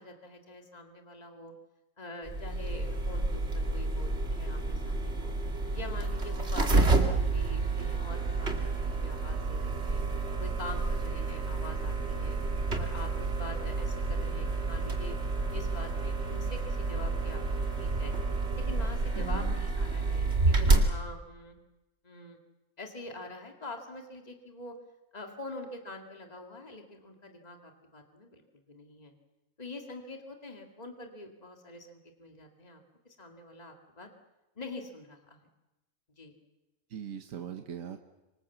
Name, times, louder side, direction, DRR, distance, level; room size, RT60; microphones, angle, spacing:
voice 1, 0.0-1.5 2.0-5.3 5.7-10.0 10.4-12.4 12.8-18.1 18.6-21.6 22.0-22.4 22.8-24.7 25.1-28.4 28.7-29.1 29.6-34.1 34.6-35.5 36.2-36.3, left 2 dB, 30° left, 3 dB, 2.3 m, -45 dB
sound 1, 2.2-20.9, right 3 dB, 55° right, 2.7 m, -29 dB
voice 2, 19.1-19.6 20.6-20.9 36.9-38.0, right 8 dB, 80° right, 6 dB, 1.5 m, -39 dB
26.0 x 25.0 x 7.2 m, 1.0 s
omnidirectional pair, 1.4 m